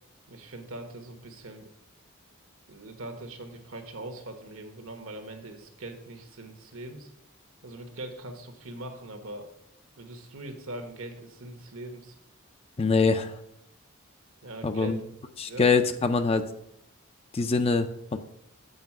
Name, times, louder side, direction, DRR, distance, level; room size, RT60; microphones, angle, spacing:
voice 1, 0.3-1.7 2.7-7.1 7.6-9.5 10.0-12.2 14.4-15.7, right 1 dB, 70° right, 5 dB, 1.3 m, -41 dB
voice 2, 12.8-13.3 14.6-15.0 15.4-16.4 17.3-18.2, left 4 dB, 25° left, 9 dB, 0.4 m, -24 dB
8.0 x 4.9 x 5.9 m, 0.81 s
head